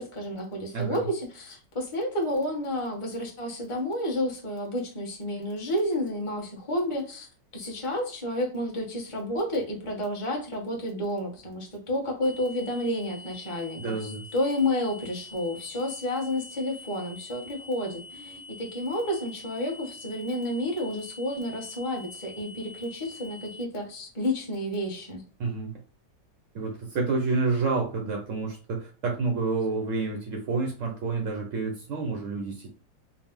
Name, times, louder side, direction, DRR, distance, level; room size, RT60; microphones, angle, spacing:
voice 1, 0.0-7.3 7.5-25.2, left 1 dB, 25° left, -1 dB, 0.8 m, -30 dB
sound 1, 12.2-23.6, left 2 dB, 85° left, 1.5 m, -46 dB
voice 2, 13.8-14.2 25.4-25.7 26.5-32.7, right 4 dB, 65° right, 2 dB, 0.7 m, -29 dB
4.8 x 2.0 x 3.6 m, 0.39 s
omnidirectional pair, 2.3 m